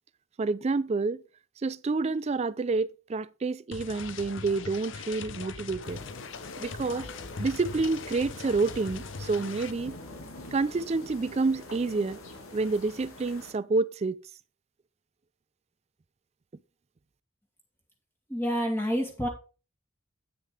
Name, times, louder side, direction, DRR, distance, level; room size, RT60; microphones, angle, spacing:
voice 1, 0.4-1.2 1.6-6.0 6.6-7.1 7.4-10.0 10.5-12.2 12.5-14.2, right 3 dB, 30° right, 0.3 m, -28 dB
sound 1, 3.7-9.7, left 4 dB, 60° left, 0.7 m, -40 dB
sound 2, 5.8-13.5, left 2 dB, 90° left, 1.9 m, -45 dB
voice 2, 18.3-19.3, equal, 10° left, 2.2 m, -28 dB
9.3 x 6.5 x 4.8 m
head